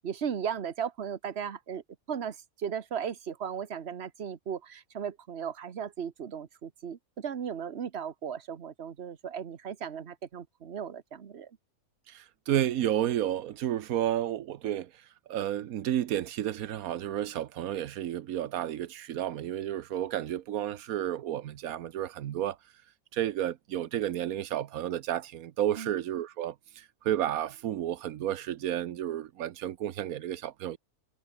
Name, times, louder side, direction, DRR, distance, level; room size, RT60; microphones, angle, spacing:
voice 1, 0.0-11.5 25.8-25.9, right 8 dB, 50° right, 1.4 m, -36 dB
voice 2, 12.1-14.9 15.3-22.6 23.1-30.8, right 11 dB, 80° right, 1.3 m, -31 dB
omnidirectional pair, 1.5 m